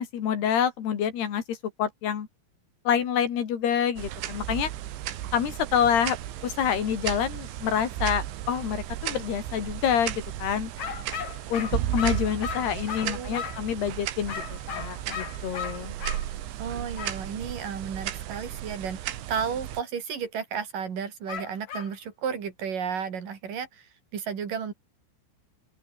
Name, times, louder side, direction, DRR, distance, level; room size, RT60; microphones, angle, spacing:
voice 1, 0.0-2.3 2.9-4.7 5.3-6.2 6.4-10.7 11.5-15.9, left 8 dB, 60° left, 4.4 m, -27 dB
sound 1, 4.0-19.8, right 13 dB, 75° right, 4.0 m, -34 dB
sound 2, 10.8-13.7 14.3-16.2 17.0-17.2 21.3-21.9, left 7 dB, 45° left, 3.2 m, -36 dB
voice 2, 12.8-13.4 16.6-24.7, right 7 dB, 50° right, 4.6 m, -33 dB
open air
omnidirectional pair, 5.5 m